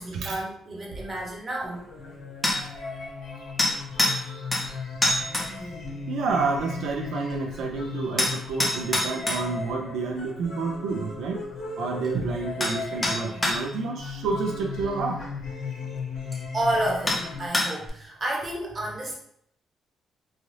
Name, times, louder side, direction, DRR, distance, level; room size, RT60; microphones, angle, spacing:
voice 1, 0.0-1.8 16.5-19.2, right 1 dB, 35° right, -2 dB, 0.9 m, -30 dB
sound 1, 1.6-17.5, left 4 dB, 90° left, 1.2 m, -37 dB
sound 2, 2.4-2.6 3.6-4.2 4.5-4.7 5.0-5.5 8.2-9.4 12.0-12.1 12.6-12.8 13.0-13.6 15.2-15.3 16.3-16.4 17.1-17.2 17.5-17.9, left 1 dB, 15° left, 0.7 m, -24 dB
voice 2, 6.1-11.4 11.8-15.2, right 4 dB, 80° right, 2 dB, 0.3 m, -29 dB
3.2 x 2.3 x 2.6 m, 0.71 s
cardioid pair, 90°, 0 cm